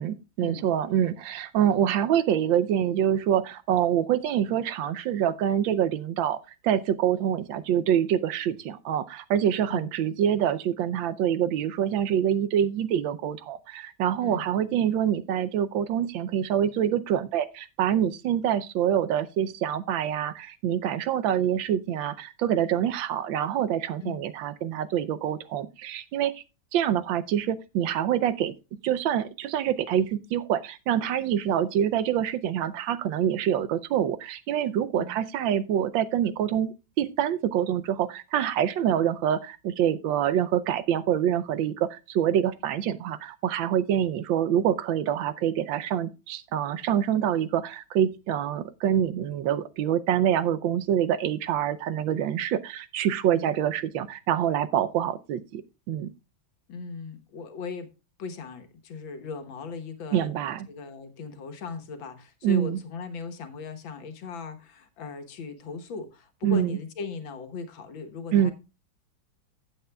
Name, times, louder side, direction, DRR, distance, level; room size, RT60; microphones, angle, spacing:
voice 1, 0.0-6.4 6.6-26.4 26.7-28.6 28.8-55.6 55.9-56.1 60.1-60.7 62.4-62.8 66.4-66.8 68.3-68.5, right 10 dB, 75° right, 1.4 m, -26 dB
voice 2, 56.7-57.9 58.2-60.3 60.7-68.5, left 5 dB, 75° left, 2.0 m, -38 dB
15.5 x 7.9 x 2.3 m
omnidirectional pair, 2.1 m